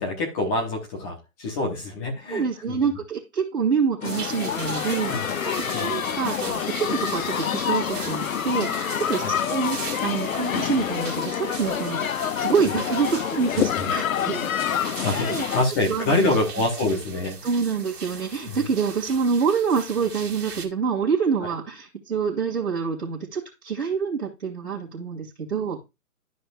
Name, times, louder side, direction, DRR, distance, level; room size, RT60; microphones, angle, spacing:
voice 1, 0.0-2.8 5.0-5.3 5.7-5.9 9.2-9.3 13.5-13.9 15.0-15.3 15.5-17.4 18.5-18.6, left 2 dB, 10° left, -1 dB, 1.1 m, -26 dB
voice 2, 2.3-14.5 15.1-15.5 15.9-16.3 16.6-16.7 17.4-25.9, right 6 dB, 50° right, -5 dB, 2.7 m, -26 dB
sound 1, 4.0-15.6, left 9 dB, 60° left, 0.6 m, -27 dB
sound 2, 4.0-20.6, right 5 dB, 75° right, 2.1 m, -39 dB
12.5 x 5.1 x 2.4 m, 0.24 s
hypercardioid pair, 160°, 46 cm